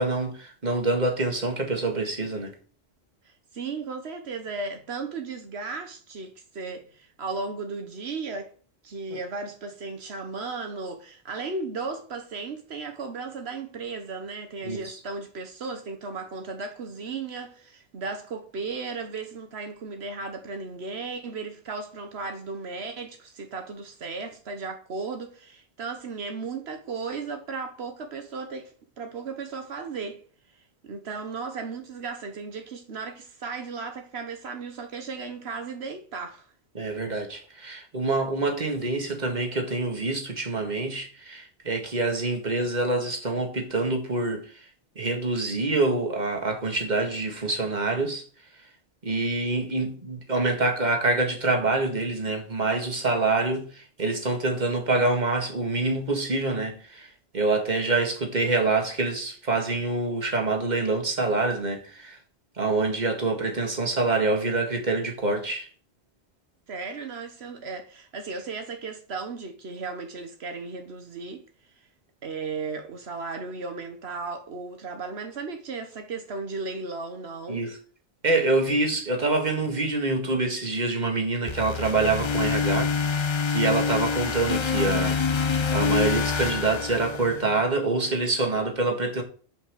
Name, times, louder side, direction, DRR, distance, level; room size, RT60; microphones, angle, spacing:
voice 1, 0.0-2.5 9.1-9.2 14.6-15.0 36.8-44.6 45.0-48.2 49.0-62.2 62.6-65.7 77.5-77.8 78.2-85.2 85.4-89.2, right 3 dB, 45° right, 2.0 m, -26 dB
voice 2, 3.2-8.5 8.8-30.2 30.5-36.5 66.7-71.4 72.2-77.7, right 4 dB, 80° right, 1.3 m, -35 dB
sound 1, 81.5-87.6, left 5 dB, 35° left, 0.5 m, -26 dB
8.0 x 5.6 x 6.7 m
omnidirectional pair, 1.1 m